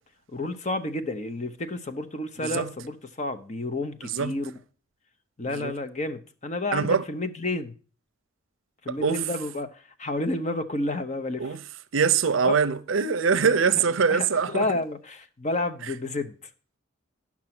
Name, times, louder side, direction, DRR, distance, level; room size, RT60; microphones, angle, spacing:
voice 1, 0.3-4.5 5.4-7.7 8.8-11.5 12.4-12.6 14.1-16.3, left 2 dB, 35° left, 0.8 m, -30 dB
voice 2, 2.4-2.7 4.1-4.4 5.5-5.7 6.7-7.0 8.9-9.2 11.4-11.6 11.9-14.8, right 6 dB, 75° right, 0.6 m, -23 dB
11.0 x 6.0 x 5.9 m
head